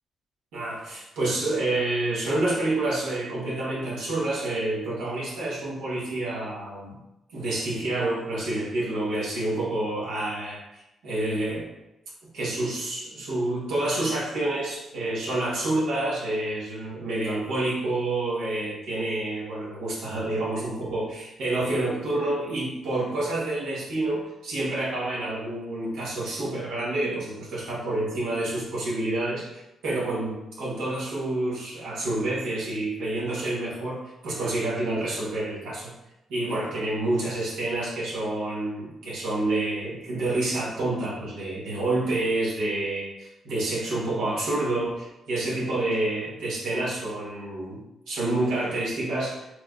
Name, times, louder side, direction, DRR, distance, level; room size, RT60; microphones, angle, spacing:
voice 1, 0.5-7.0 7.3-11.7 12.3-34.0 34.2-35.9 36.3-47.8 48.1-49.5, right 2 dB, 90° right, -5 dB, 1.1 m, -28 dB
4.5 x 3.2 x 2.4 m, 0.89 s
cardioid pair, 75°, 0 cm